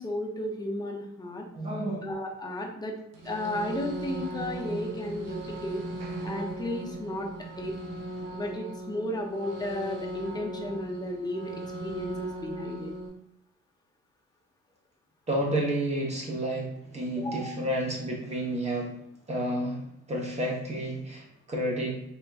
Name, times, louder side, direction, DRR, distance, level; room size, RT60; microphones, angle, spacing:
voice 1, 0.0-1.5 2.0-2.9 3.2-5.8 6.2-7.3 7.6-7.7 8.3-11.6 11.8-12.9 17.2-17.6, left 1 dB, 15° left, 0 dB, 0.5 m, -34 dB
voice 2, 1.5-2.0 15.3-18.9 19.3-22.0, right 1 dB, 25° right, -1 dB, 0.8 m, -30 dB
sound 1, 3.1-13.1, right 1 dB, 60° right, 0.8 m, -38 dB
3.4 x 2.9 x 2.3 m, 0.77 s
cardioid pair, 125°, 29 cm